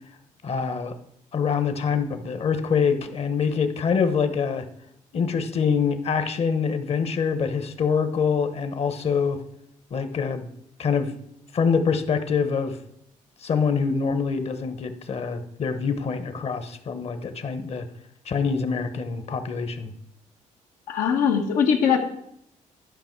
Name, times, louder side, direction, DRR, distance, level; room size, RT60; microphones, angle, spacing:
voice 1, 0.4-1.0 1.3-4.7 5.1-9.4 9.9-10.5 10.8-11.2 11.5-12.8 13.4-17.9 18.2-19.9, left 6 dB, 45° left, 9 dB, 1.0 m, -25 dB
voice 2, 20.9-22.0, left 7 dB, 90° left, 3 dB, 1.4 m, -21 dB
11.5 x 5.3 x 4.6 m, 0.74 s
cardioid pair, 100°, 14 cm